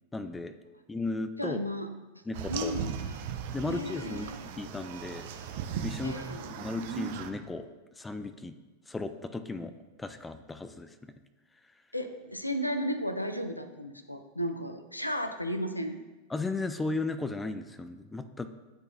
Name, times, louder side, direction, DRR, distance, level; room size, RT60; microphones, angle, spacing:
voice 1, 0.1-0.5 0.9-1.6 2.3-2.7 3.5-5.3 5.8-7.7 8.0-8.6 8.9-11.1 16.3-18.5, left 3 dB, 10° left, 10 dB, 0.3 m, -35 dB
voice 2, 1.4-1.9 2.5-3.0 3.7-4.4 6.0-6.6 11.9-16.0, equal, 85° left, 8 dB, 0.4 m, -34 dB
sound 1, 2.3-7.3, right 8 dB, 50° right, 0.4 m, -38 dB
9.6 x 3.8 x 2.6 m, 1.2 s
figure-of-eight pair, 90°, 0 cm